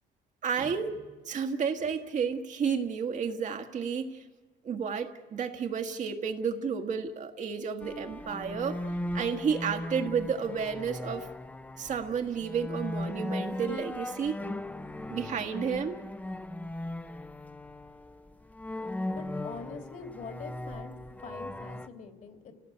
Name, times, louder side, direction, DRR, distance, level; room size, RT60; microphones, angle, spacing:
voice 1, 0.4-4.2 4.6-8.8 9.1-11.3 11.8-14.4 15.1-16.0, right 6 dB, 45° right, 6 dB, 1.5 m, -31 dB
sound 1, 7.8-21.9, left 1 dB, 10° left, 0.8 m, -38 dB
voice 2, 19.1-20.9 21.2-22.5, left 5 dB, 50° left, 6 dB, 2.8 m, -44 dB
29.5 x 17.5 x 8.5 m, 1.4 s
cardioid pair, 110°, 17 cm